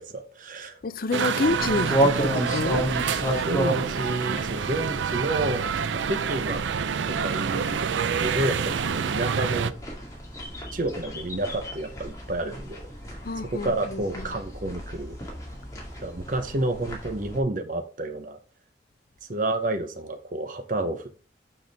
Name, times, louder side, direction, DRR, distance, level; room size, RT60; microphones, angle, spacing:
voice 1, 0.0-0.8 3.4-5.7 6.1-6.6 7.0-9.7 10.7-12.8 13.4-15.2 16.0-18.4 19.3-21.2, right 2 dB, 45° right, 0.8 m, -30 dB
voice 2, 0.8-2.9 13.2-14.2, left 3 dB, 50° left, 0.5 m, -28 dB
sound 1, 1.1-9.7, right 6 dB, 85° right, 0.4 m, -27 dB
sound 2, 1.4-17.4, right 1 dB, 20° left, 2.0 m, -32 dB
6.4 x 5.9 x 3.5 m
head